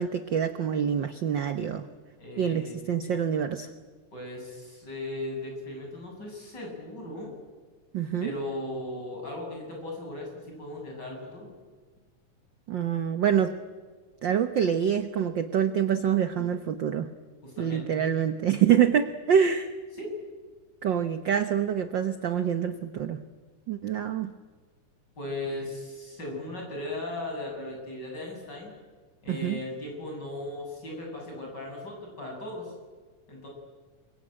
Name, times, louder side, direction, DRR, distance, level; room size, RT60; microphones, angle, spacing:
voice 1, 0.0-1.9 2.4-3.7 7.9-8.3 12.7-13.5 14.2-17.1 17.6-19.7 20.8-23.2 23.7-24.3 29.3-29.6, right 8 dB, 65° right, 9 dB, 1.1 m, -26 dB
voice 2, 2.2-2.8 4.1-7.3 8.2-11.5 17.4-18.1 20.0-20.1 25.2-28.7 29.2-32.7 33.3-33.5, left 1 dB, 30° left, 0 dB, 8.3 m, -37 dB
28.0 x 23.5 x 8.9 m, 1.4 s
omnidirectional pair, 3.4 m